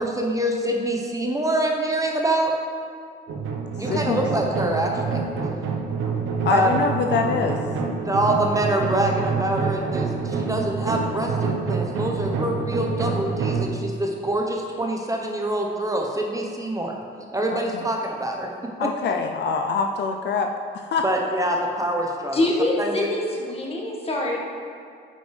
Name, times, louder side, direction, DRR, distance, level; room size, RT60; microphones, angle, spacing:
voice 1, 0.0-2.5 3.8-5.2 6.5-6.7 8.0-16.9 17.3-18.5 18.8-18.9 21.0-22.4 22.8-23.1, right 1 dB, 15° right, 1 dB, 0.8 m, -25 dB
sound 1, 3.3-13.7, right 5 dB, 80° right, 0.8 m, -27 dB
voice 2, 3.9-4.5 6.4-7.6 17.7-17.8 18.8-20.5 20.7-21.0, left 5 dB, 60° left, 4 dB, 0.5 m, -25 dB
voice 3, 22.3-24.4, left 1 dB, 30° left, -2 dB, 1.5 m, -24 dB
9.2 x 5.2 x 3.2 m, 2.3 s
cardioid pair, 90°, 20 cm